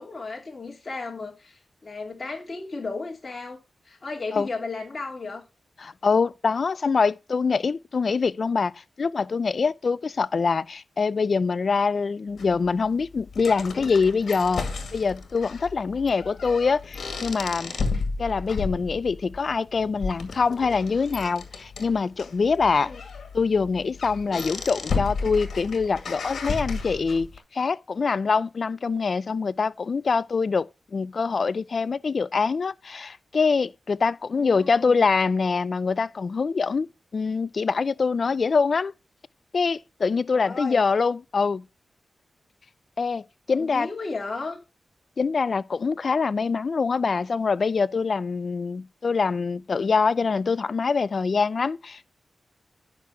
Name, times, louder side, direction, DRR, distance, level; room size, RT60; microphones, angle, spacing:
voice 1, 0.0-5.4 22.8-23.0 34.4-35.0 40.3-40.9 43.5-44.6, left 3 dB, 40° left, 2.7 m, -35 dB
voice 2, 5.8-14.7 14.9-17.7 18.2-22.9 23.3-27.3 27.5-36.9 37.1-38.9 39.5-41.6 43.0-43.9 45.2-52.1, left 5 dB, 60° left, 0.4 m, -24 dB
sound 1, 12.4-27.4, left 4 dB, 80° left, 2.1 m, -33 dB
10.5 x 6.0 x 4.7 m
cardioid pair, 55°, 0 cm